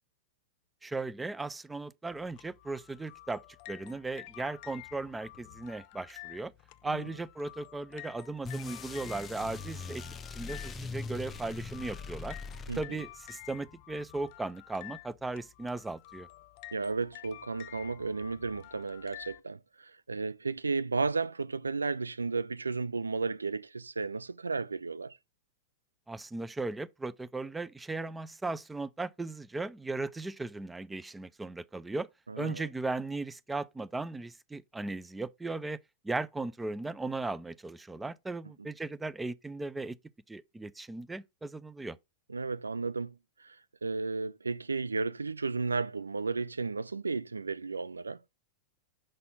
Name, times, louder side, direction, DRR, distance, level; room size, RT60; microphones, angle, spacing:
voice 1, 0.8-3.4 3.7-6.5 6.8-10.0 10.3-12.4 12.8-16.3 26.1-32.1 32.4-35.8 36.0-40.0 40.3-42.0, right 3 dB, 10° right, 0.4 m, -37 dB
sound 1, 2.1-19.4, left 17 dB, 45° left, 0.5 m, -51 dB
sound 2, 8.4-13.3, left 4 dB, 20° left, 0.8 m, -41 dB
voice 2, 12.7-13.0 16.7-25.2 32.3-32.7 42.3-43.1 43.4-43.6 43.8-48.2, right 4 dB, 80° right, 0.3 m, -33 dB
6.4 x 4.1 x 4.1 m
figure-of-eight pair, 95°, 0 cm